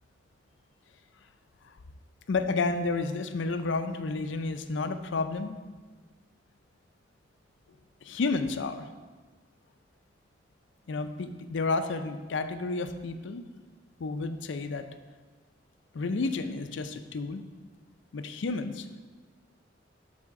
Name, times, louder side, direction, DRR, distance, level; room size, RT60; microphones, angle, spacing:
voice 1, 2.3-5.6 8.0-8.9 10.9-13.5 14.0-14.9 15.9-17.5 18.1-18.9, left 3 dB, 70° left, 9 dB, 0.5 m, -31 dB
12.0 x 4.2 x 3.7 m, 1.4 s
head